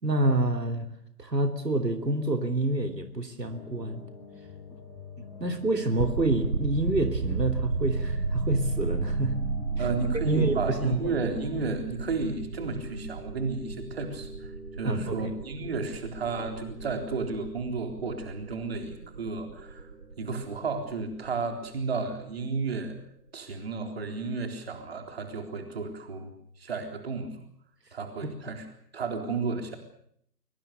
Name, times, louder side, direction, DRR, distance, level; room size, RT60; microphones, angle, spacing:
voice 1, 0.0-0.9 1.2-4.0 5.2-9.3 9.8-9.9 10.1-11.1 14.8-15.3 28.2-28.3, right 2 dB, 75° right, 7 dB, 3.1 m, -28 dB
sound 1, 3.5-11.5, left 4 dB, 20° left, 4.2 m, -43 dB
sound 2, 6.0-22.9, right 3 dB, 60° right, 5.6 m, -34 dB
voice 2, 9.8-14.5 14.8-19.8 20.2-22.9 23.3-26.3 26.6-27.4 27.9-28.6 28.9-29.8, right 4 dB, 35° right, 6 dB, 3.9 m, -32 dB
23.5 x 23.0 x 6.8 m, 0.66 s
figure-of-eight pair, 155°, 49 cm